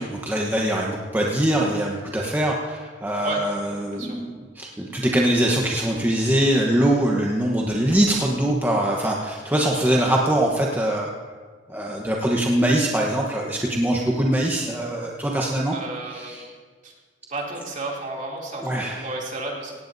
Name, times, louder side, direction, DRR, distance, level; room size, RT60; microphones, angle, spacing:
voice 1, 0.0-11.1 11.7-15.7 16.1-16.4 18.6-19.1, right 1 dB, 10° right, -2 dB, 1.1 m, -23 dB
voice 2, 15.7-16.5 16.8-16.9 17.3-19.7, right 2 dB, 45° right, -2 dB, 2.8 m, -32 dB
18.0 x 17.0 x 2.7 m, 1.5 s
head